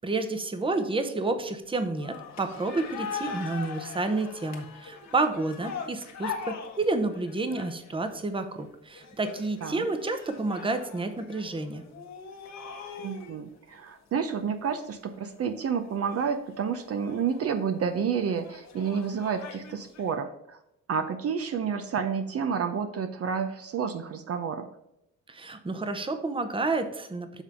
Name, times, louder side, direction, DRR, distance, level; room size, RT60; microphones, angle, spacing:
voice 1, 0.0-11.8 25.3-27.4, right 3 dB, 15° right, 8 dB, 0.8 m, -30 dB
sound 1, 1.7-8.2 8.9-13.4 13.9-14.0 14.3-14.4 15.1-15.4 15.9-17.5 18.2-20.1, left 6 dB, 60° left, 1.3 m, -41 dB
voice 2, 13.0-20.6 20.9-24.7, right 6 dB, 50° right, 8 dB, 0.6 m, -30 dB
7.3 x 3.4 x 5.6 m, 0.83 s
cardioid pair, 90°, 30 cm